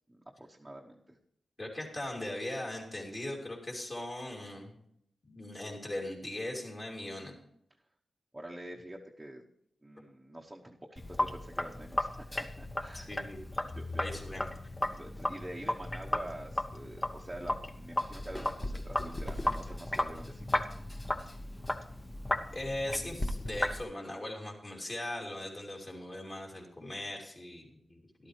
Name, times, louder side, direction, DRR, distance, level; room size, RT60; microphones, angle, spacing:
voice 1, 0.1-1.2 8.3-9.4 9.8-13.1 13.7-14.2 14.9-20.6 20.9-21.1, right 1 dB, 10° right, -2 dB, 1.0 m, -46 dB
voice 2, 1.6-4.7 5.3-7.3 12.9-13.6 14.0-14.4 22.5-28.3, left 1 dB, 35° left, -2 dB, 2.7 m, -39 dB
Sink (filling or washing), 11.0-23.8, left 1 dB, 20° left, 0.8 m, -35 dB
13.0 x 12.0 x 3.2 m, 0.74 s
wide cardioid pair, 115°, 0 cm